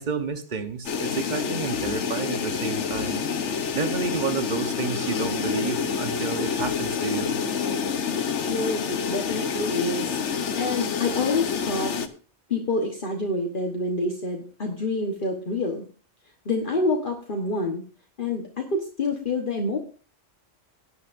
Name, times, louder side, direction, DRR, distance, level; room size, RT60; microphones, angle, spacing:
voice 1, 0.0-3.3 3.7-7.4, right 5 dB, 45° right, 9 dB, 1.2 m, -30 dB
sound 1, 0.9-12.1, left 6 dB, 85° left, 1.2 m, -28 dB
voice 2, 8.4-11.9 12.5-15.8 16.4-17.8 18.2-19.8, left 2 dB, 50° left, 1 dB, 1.4 m, -27 dB
18.0 x 9.6 x 2.6 m, 0.39 s
omnidirectional pair, 1.2 m